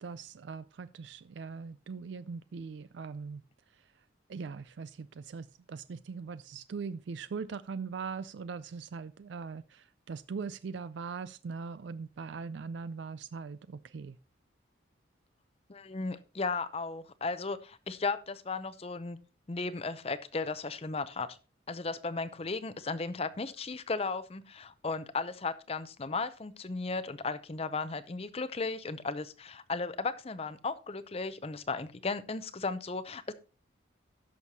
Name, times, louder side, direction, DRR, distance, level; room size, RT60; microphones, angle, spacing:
voice 1, 0.0-3.4 4.3-14.2, right 5 dB, 65° right, 15 dB, 0.4 m, -41 dB
voice 2, 15.7-19.2 19.5-21.4 21.7-33.3, left 4 dB, 30° left, 13 dB, 0.6 m, -35 dB
16.5 x 6.3 x 2.8 m, 0.32 s
head